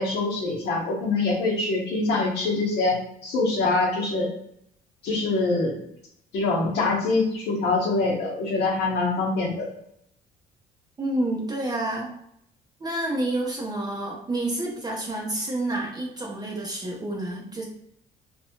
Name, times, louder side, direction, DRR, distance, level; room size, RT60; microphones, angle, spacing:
voice 1, 0.0-4.3 5.0-5.8 6.3-9.7, left 3 dB, 75° left, -3 dB, 0.9 m, -24 dB
voice 2, 11.0-12.1 12.8-17.7, right 1 dB, 25° right, -1 dB, 0.6 m, -29 dB
2.8 x 2.2 x 2.8 m, 0.74 s
cardioid pair, 110°, 17 cm